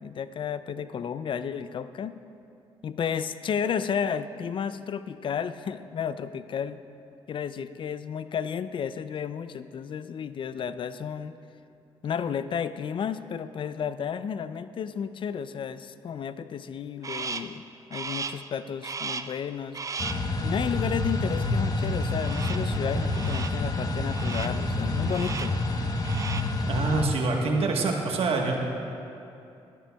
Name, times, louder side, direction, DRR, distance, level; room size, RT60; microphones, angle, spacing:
voice 1, 0.0-2.2 2.8-6.8 7.3-11.4 12.0-17.6 17.9-19.8 20.4-25.6, left 7 dB, 50° left, 13 dB, 0.4 m, -32 dB
Crow, 17.0-17.6 17.9-18.5 18.8-19.4 19.7-20.3 22.2-22.7 23.1-23.6 24.1-24.6 25.1-25.6 25.9-26.6, right 5 dB, 30° right, 0.4 m, -36 dB
sound 1, 20.0-27.0, left 2 dB, 35° left, 1.0 m, -28 dB
voice 2, 26.7-28.5, right 3 dB, 60° right, 1 dB, 1.3 m, -25 dB
12.0 x 11.0 x 2.3 m, 2.7 s
supercardioid pair, 65°, 11 cm